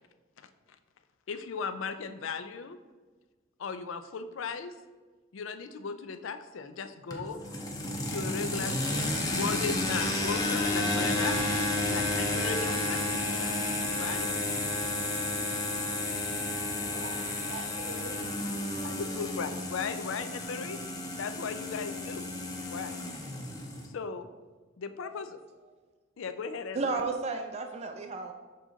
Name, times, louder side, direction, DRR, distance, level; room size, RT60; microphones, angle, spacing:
voice 1, 1.3-2.8 3.6-4.7 5.3-7.4 8.1-11.4 11.9-13.5 14.0-14.3 18.8-20.8 21.2-22.3 22.7-23.0 23.9-24.3 24.8-25.4 26.2-27.0, left 5 dB, 75° left, 10 dB, 0.4 m, -37 dB
sound 1, 7.1-23.9, left 2 dB, 20° left, 0.7 m, -31 dB
voice 2, 16.8-18.8, right 2 dB, 70° right, 1 dB, 1.2 m, -45 dB
voice 3, 26.7-28.3, right 3 dB, 35° right, 5 dB, 0.4 m, -33 dB
6.7 x 3.7 x 3.8 m, 1.4 s
head